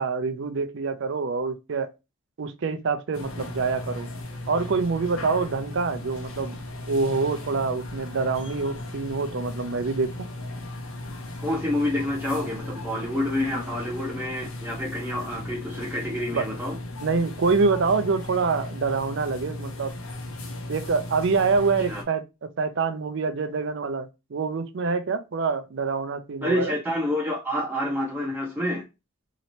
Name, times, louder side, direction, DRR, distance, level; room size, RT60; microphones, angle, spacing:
voice 1, 0.0-1.9 2.4-4.1 4.5-6.6 6.9-10.1 16.3-16.4 17.0-19.9 20.7-26.7, right 4 dB, 60° right, 0.5 m, -26 dB
sound 1, 3.1-22.0, left 1 dB, 85° left, 0.8 m, -36 dB
voice 2, 11.4-16.8 21.9-22.0 26.4-28.8, left 1 dB, 10° right, 0.6 m, -28 dB
3.1 x 2.9 x 2.7 m
head